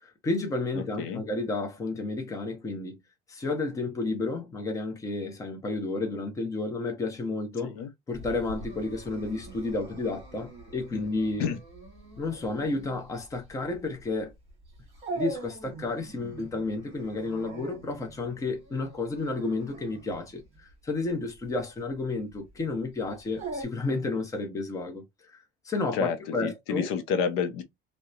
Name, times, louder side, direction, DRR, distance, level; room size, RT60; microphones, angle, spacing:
voice 1, 0.0-3.0 3.3-7.8 8.1-11.5 12.2-14.3 15.1-20.4 20.8-26.9, left 3 dB, 15° left, 0.6 m, -31 dB
voice 2, 0.7-1.2 7.6-7.9 11.4-11.6 25.9-27.6, left 6 dB, 85° left, 0.6 m, -30 dB
Dog, 8.1-23.7, right 2 dB, 30° right, 1.2 m, -43 dB
2.8 x 2.1 x 2.3 m
cardioid pair, 160°, 21 cm